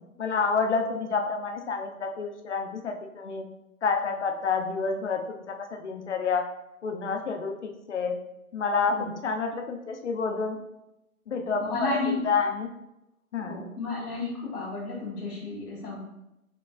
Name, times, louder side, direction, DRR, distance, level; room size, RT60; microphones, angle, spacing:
voice 1, 0.2-3.5 3.8-6.4 6.8-8.1 8.5-8.9 9.2-10.6 11.3-12.7 13.3-13.7, left 5 dB, 50° left, 4 dB, 0.6 m, -29 dB
voice 2, 11.7-12.3 13.4-16.0, left 3 dB, 85° left, -4 dB, 1.3 m, -32 dB
5.9 x 2.1 x 2.4 m, 0.88 s
hypercardioid pair, 165°, 44 cm